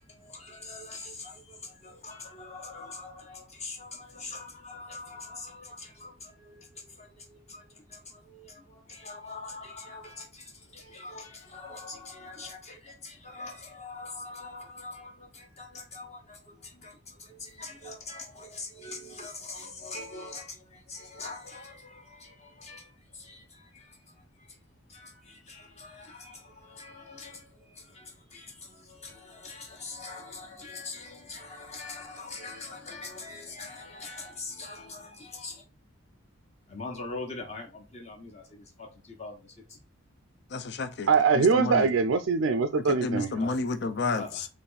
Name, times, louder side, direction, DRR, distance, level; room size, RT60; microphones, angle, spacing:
voice 1, 0.0-24.0 24.9-35.6 36.7-39.8 43.4-43.5 44.1-44.4, left 3 dB, 30° left, 1.2 m, -43 dB
voice 2, 40.5-41.9 42.9-44.5, left 3 dB, 50° left, 0.5 m, -31 dB
voice 3, 41.1-43.3, right 5 dB, 70° right, 0.4 m, -23 dB
4.1 x 3.1 x 3.9 m
head